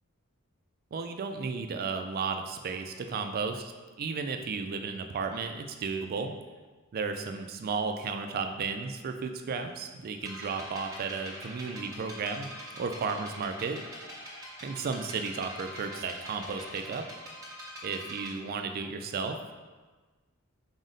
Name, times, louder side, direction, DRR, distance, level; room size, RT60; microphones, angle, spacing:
voice 1, 0.9-6.3 6.9-12.5 12.7-13.9 14.6-17.1 17.8-19.4, right 5 dB, 45° right, 6 dB, 0.3 m, -34 dB
sound 1, 10.2-18.3, equal, 15° right, 1.0 m, -44 dB
4.9 x 2.1 x 3.9 m, 1.3 s
head